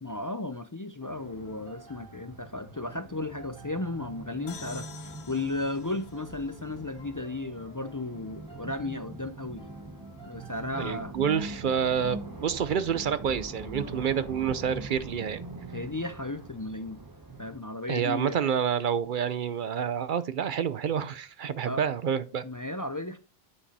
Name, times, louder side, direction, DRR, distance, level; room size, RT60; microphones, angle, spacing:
voice 1, 0.0-9.6 10.3-11.1 15.7-17.0 17.4-18.4 21.7-21.8 22.4-23.2, left 2 dB, 35° left, 0.3 m, -34 dB
sound 1, 1.0-14.7, equal, 5° left, 2.4 m, -55 dB
sound 2, 1.1-17.6, right 2 dB, 20° right, 0.8 m, -43 dB
sound 3, 4.5-8.0, left 7 dB, 85° left, 1.1 m, -49 dB
voice 2, 10.8-15.4 17.9-22.4, right 8 dB, 60° right, 0.7 m, -28 dB
8.6 x 5.0 x 4.1 m
omnidirectional pair, 1.1 m